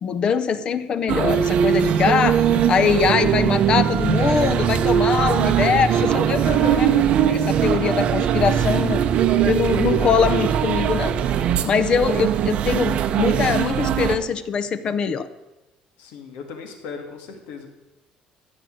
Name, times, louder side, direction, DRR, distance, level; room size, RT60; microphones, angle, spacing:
voice 1, 0.0-2.4 2.7-9.0 9.4-15.3, left 6 dB, 35° left, 13 dB, 0.6 m, -22 dB
sound 1, 1.1-14.2, right 8 dB, 45° right, 0.7 m, -21 dB
voice 2, 2.5-3.0 6.3-7.0 16.0-17.7, left 6 dB, 85° left, 4 dB, 2.3 m, -35 dB
sound 2, 5.2-13.3 13.7-13.9, right 16 dB, 80° right, 0.4 m, -26 dB
13.5 x 7.7 x 7.7 m, 1.0 s
cardioid pair, 170°, 3 cm